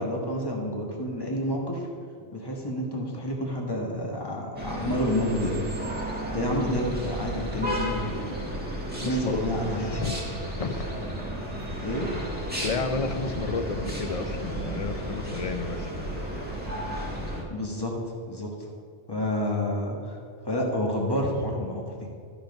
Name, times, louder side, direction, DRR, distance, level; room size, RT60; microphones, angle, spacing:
voice 1, 0.0-1.9 2.3-5.6 6.3-8.2 9.0-10.1 11.8-12.1 17.5-17.9 18.3-18.5 19.1-20.2 20.4-22.1, left 1 dB, 20° left, -1 dB, 1.6 m, -29 dB
sound 1, 4.6-17.4, right 1 dB, 10° right, 1.7 m, -33 dB
voice 2, 9.0-9.5 9.7-10.2 10.6-10.9 12.6-15.9, left 4 dB, 40° left, 8 dB, 0.6 m, -32 dB
13.5 x 5.2 x 5.3 m, 2.3 s
omnidirectional pair, 1.2 m